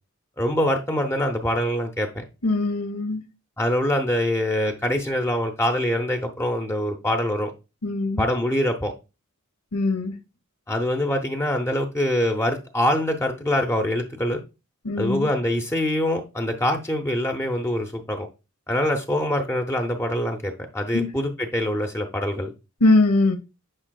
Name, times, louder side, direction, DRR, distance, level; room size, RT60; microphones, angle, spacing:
voice 1, 0.4-2.2 3.6-7.5 8.2-8.9 10.7-14.4 15.0-18.3 18.7-22.5, left 1 dB, 10° left, 0.6 m, -24 dB
voice 2, 2.4-3.2 7.8-8.2 9.7-10.1 14.8-15.3 20.9-21.1 22.8-23.4, left 2 dB, 85° left, 0.9 m, -21 dB
8.8 x 5.0 x 2.3 m
head